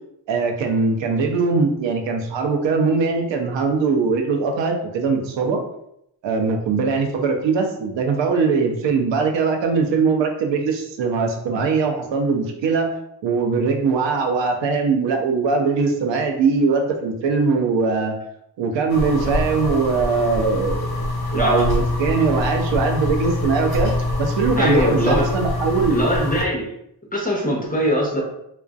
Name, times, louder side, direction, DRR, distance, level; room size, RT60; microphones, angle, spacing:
voice 1, 0.3-5.6 6.2-12.9 13.2-18.1 18.6-21.1 21.3-23.9 24.2-26.0, right 4 dB, 60° right, 3 dB, 0.7 m, -21 dB
sound 1, 18.9-26.4, left 1 dB, 45° left, 0.9 m, -25 dB
voice 2, 21.3-21.7 24.6-25.2 25.9-26.7 27.1-28.2, equal, 15° left, -3 dB, 0.7 m, -21 dB
2.5 x 2.1 x 2.3 m, 0.77 s
supercardioid pair, 55°, 49 cm